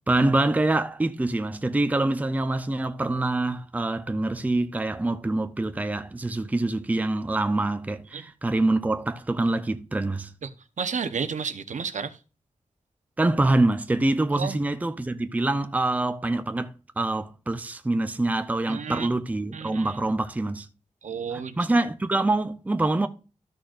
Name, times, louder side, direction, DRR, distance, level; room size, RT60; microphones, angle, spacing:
voice 1, 0.1-10.3 13.2-20.7 21.6-23.1, right 2 dB, 10° right, 0.5 m, -25 dB
voice 2, 10.8-12.2 14.3-14.6 18.7-19.2 19.5-20.0 21.0-21.6, right 6 dB, 75° right, 0.8 m, -32 dB
13.5 x 6.3 x 2.5 m
wide cardioid pair, 155°, 13 cm